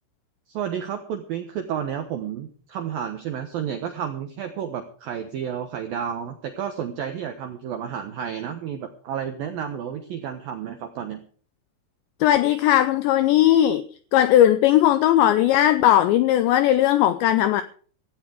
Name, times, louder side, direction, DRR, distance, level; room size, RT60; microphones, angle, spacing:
voice 1, 0.5-11.2, right 8 dB, 80° right, 6 dB, 2.1 m, -31 dB
voice 2, 12.2-13.8 14.1-17.6, left 12 dB, 85° left, 11 dB, 2.5 m, -18 dB
16.5 x 15.0 x 3.6 m, 0.44 s
omnidirectional pair, 6.0 m